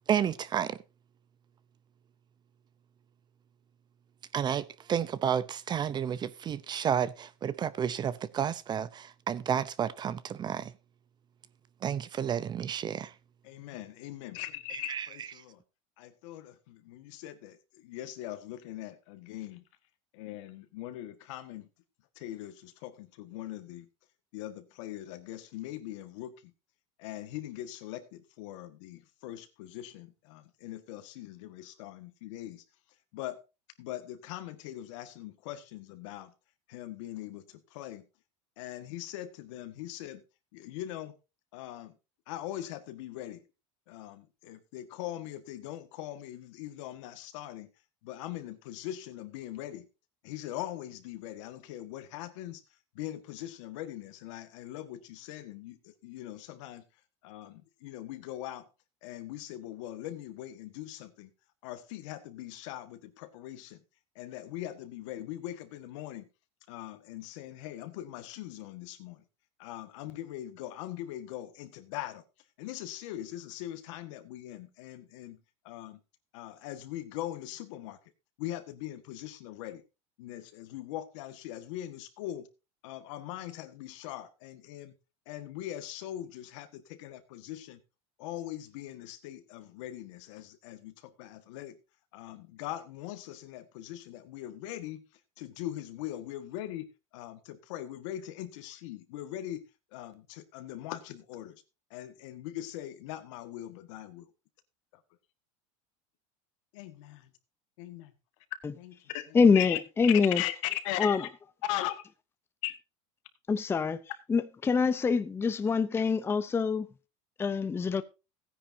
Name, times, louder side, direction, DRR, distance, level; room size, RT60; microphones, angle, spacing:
voice 1, 0.1-0.8 4.3-10.7 11.8-13.1 14.9-15.1, right 8 dB, 25° right, 0.7 m, -31 dB
voice 2, 13.4-15.6 16.0-19.6 20.1-21.7 22.2-23.9 24.3-26.5 27.0-32.6 33.1-33.4 33.8-36.3 36.7-38.1 38.6-40.2 40.5-41.2 41.5-42.0 42.3-43.4 43.9-47.7 48.0-49.9 50.2-52.6 53.0-56.9 57.2-58.7 59.0-61.3 61.6-63.8 64.2-66.3 66.7-69.2 69.6-72.2 72.6-76.0 76.3-78.0 78.4-79.8 80.2-82.5 82.8-85.0 85.3-87.8 88.2-91.8 92.1-96.9 97.1-99.6 99.9-101.6 101.9-104.3 106.7-107.3 107.8-108.1 108.8-109.8 110.1-111.3 111.6-112.0 112.6-112.8, left 13 dB, 80° left, 1.7 m, -41 dB
voice 3, 109.3-110.4 111.0-111.2 113.5-114.0 114.3-116.9 117.4-118.0, left 5 dB, 15° left, 0.6 m, -25 dB
16.5 x 10.0 x 2.7 m
supercardioid pair, 135°, 16 cm